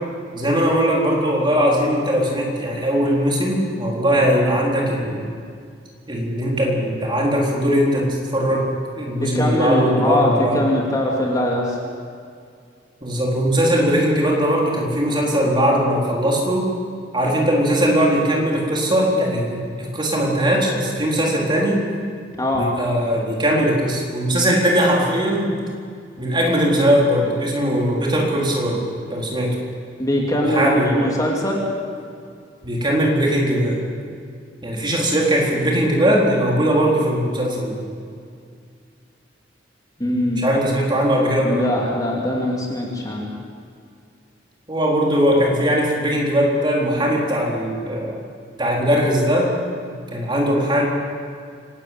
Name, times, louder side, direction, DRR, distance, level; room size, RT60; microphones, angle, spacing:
voice 1, 0.3-5.3 6.1-10.6 13.0-16.7 17.1-21.8 22.5-25.6 26.2-28.8 29.1-29.5 30.4-31.1 32.6-33.8 34.6-37.8 40.4-41.7 44.7-48.2 48.6-49.5 50.1-50.9, equal, 25° right, -2 dB, 4.1 m, -20 dB
voice 2, 9.2-11.8 22.4-22.6 30.0-31.6 40.0-40.5 41.4-43.3, left 1 dB, 20° left, -2 dB, 2.9 m, -21 dB
25.5 x 12.5 x 9.1 m, 2.2 s
head